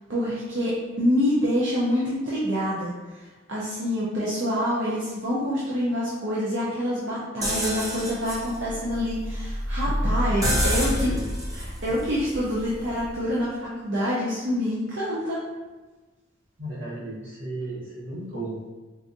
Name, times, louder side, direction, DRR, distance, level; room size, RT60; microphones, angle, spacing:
voice 1, 0.1-11.1 11.8-15.4, equal, 70° right, -8 dB, 0.6 m, -26 dB
sound 1, 7.4-13.2, equal, 20° right, 0.5 m, -28 dB
voice 2, 10.4-11.3 16.6-18.7, right 1 dB, 85° right, -7 dB, 1.3 m, -34 dB
3.9 x 2.5 x 2.6 m, 1.2 s
head